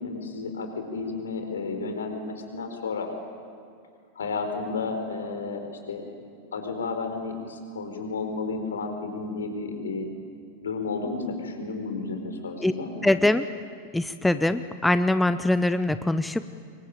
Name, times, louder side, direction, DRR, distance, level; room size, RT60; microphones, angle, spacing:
voice 1, 0.0-3.1 4.2-6.1 6.5-10.1 10.6-12.9, left 4 dB, 65° left, 5 dB, 4.4 m, -32 dB
voice 2, 13.0-13.4 13.9-16.5, left 1 dB, 5° left, 12 dB, 0.7 m, -23 dB
26.5 x 23.0 x 8.9 m, 2.3 s
figure-of-eight pair, 90°, 0 cm